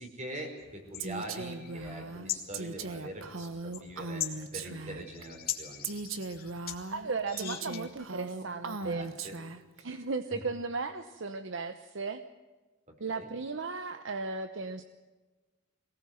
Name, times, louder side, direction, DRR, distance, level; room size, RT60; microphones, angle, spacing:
voice 1, 0.0-4.2 4.5-5.8 8.8-9.4 10.3-10.4 13.1-13.3, right 1 dB, 35° right, 3 dB, 4.8 m, -43 dB
sound 1, 0.6-8.1, left 10 dB, 50° left, 2.4 m, -42 dB
Female speech woman speaking, 1.0-5.2 5.8-9.8, right 3 dB, 90° right, 1.4 m, -39 dB
voice 2, 6.9-9.1 9.8-12.2 13.0-14.8, right 4 dB, 65° right, 9 dB, 0.9 m, -36 dB
23.0 x 18.5 x 7.8 m, 1.3 s
head